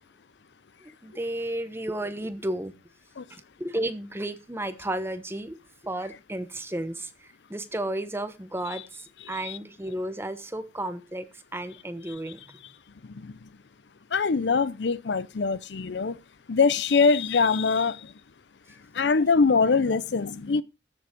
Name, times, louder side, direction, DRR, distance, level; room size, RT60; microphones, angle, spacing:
voice 1, 0.8-2.7 3.3-5.6 5.8-12.6, right 1 dB, 15° right, 1.0 m, -33 dB
voice 2, 14.1-16.2 16.5-18.1 18.9-20.6, left 4 dB, 75° left, 0.6 m, -23 dB
14.0 x 7.1 x 5.0 m
head